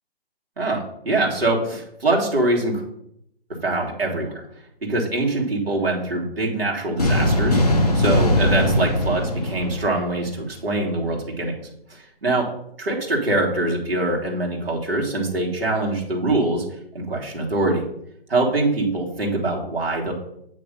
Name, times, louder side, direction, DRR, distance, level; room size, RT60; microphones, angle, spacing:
voice 1, 0.6-2.8 3.6-4.4 4.8-7.6 7.9-11.6 11.9-12.5 12.8-16.6 16.9-17.8 18.3-20.1, right 2 dB, 65° right, -1 dB, 1.9 m, -23 dB
sound 1, 7.0-10.4, left 1 dB, 40° left, 0.8 m, -20 dB
8.6 x 3.1 x 5.3 m, 0.75 s
hypercardioid pair, 180°, 31 cm